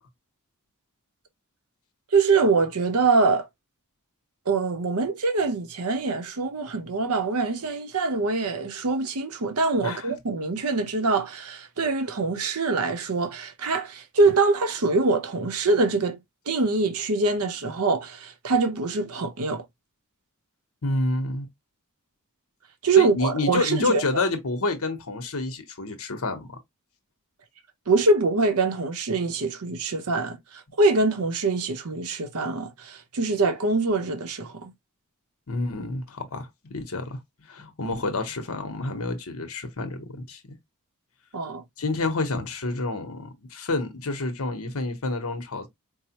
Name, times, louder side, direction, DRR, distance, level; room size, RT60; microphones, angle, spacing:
voice 1, 2.1-3.5 4.5-16.2 16.5-19.6 22.8-24.2 27.9-34.7 41.3-41.6, right 3 dB, 75° right, 0.8 m, -24 dB
voice 2, 20.8-21.5 22.9-26.5 35.5-37.2 37.5-40.4 41.8-45.7, left 2 dB, 65° left, 1.0 m, -28 dB
4.7 x 2.1 x 2.9 m
head